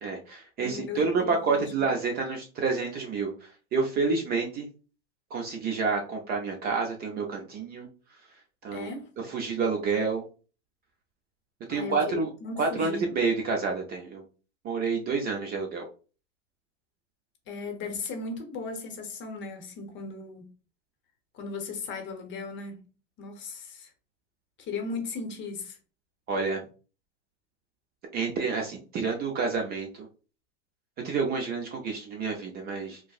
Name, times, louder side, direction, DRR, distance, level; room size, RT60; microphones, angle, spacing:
voice 1, 0.0-4.7 5.3-7.9 8.6-8.9 9.2-10.2 11.7-12.3 12.6-14.2 14.6-15.9 26.3-26.6 28.1-30.1 31.0-33.0, right 4 dB, 25° right, 0.5 m, -29 dB
voice 2, 0.6-1.9 8.7-9.1 11.7-13.1 17.5-20.5 21.3-22.8 23.2-23.9 24.6-25.8, left 4 dB, 30° left, 0.8 m, -37 dB
4.5 x 2.1 x 2.4 m
hypercardioid pair, 120°, 40 cm